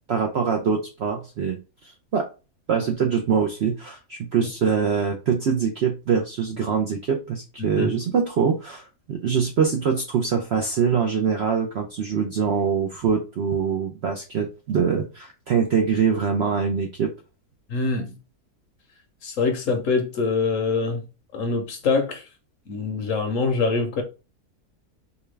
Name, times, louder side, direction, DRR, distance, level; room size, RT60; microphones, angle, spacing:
voice 1, 0.1-2.3 2.7-17.1, right 6 dB, 65° right, 0.6 m, -24 dB
voice 2, 17.7-18.1 19.2-21.0 21.3-22.2 22.7-24.0, left 4 dB, 60° left, 1.0 m, -24 dB
4.5 x 2.2 x 3.2 m
omnidirectional pair, 1.7 m